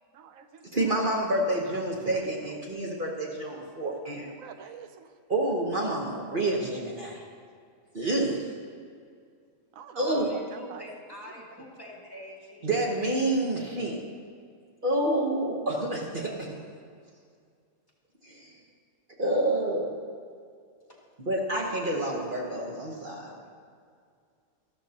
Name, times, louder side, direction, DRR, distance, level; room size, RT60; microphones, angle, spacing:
voice 1, 0.1-0.8 2.0-2.4 4.2-5.1 9.7-10.8, right 7 dB, 85° right, 8 dB, 1.1 m, -45 dB
voice 2, 0.7-4.3 5.3-7.2 7.9-8.5 10.0-10.3 12.6-14.0 14.8-16.5 18.2-18.5 19.2-19.9 21.2-23.4, right 1 dB, 40° right, -2 dB, 1.3 m, -28 dB
voice 3, 10.0-12.7 20.9-21.0, equal, 15° left, -4 dB, 2.5 m, -44 dB
13.5 x 13.0 x 2.9 m, 2.2 s
omnidirectional pair, 1.4 m